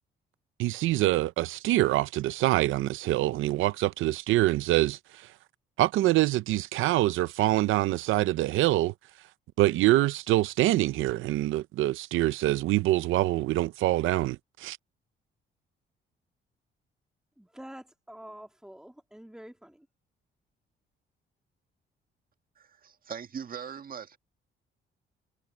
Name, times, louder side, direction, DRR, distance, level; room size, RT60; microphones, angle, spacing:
voice 1, 0.6-5.3 5.8-8.9 9.6-14.8, right 16 dB, 85° right, 0.6 m, -25 dB
voice 2, 17.4-19.9, equal, 5° right, 3.2 m, -47 dB
voice 3, 22.6-24.2, right 7 dB, 45° right, 1.7 m, -40 dB
cardioid pair, 90°, 20 cm